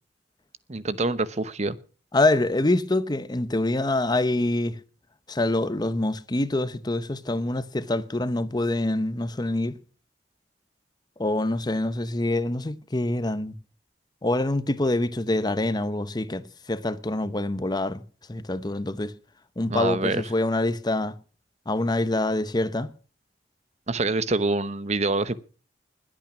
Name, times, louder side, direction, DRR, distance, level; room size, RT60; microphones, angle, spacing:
voice 1, 0.7-1.8 19.7-20.2 23.9-25.4, right 3 dB, 40° right, 0.9 m, -25 dB
voice 2, 2.1-4.8 5.3-9.7 11.2-13.5 14.2-18.0 18.3-19.1 19.6-21.1 21.7-22.9, left 2 dB, 25° left, 0.8 m, -25 dB
21.0 x 8.9 x 6.0 m
head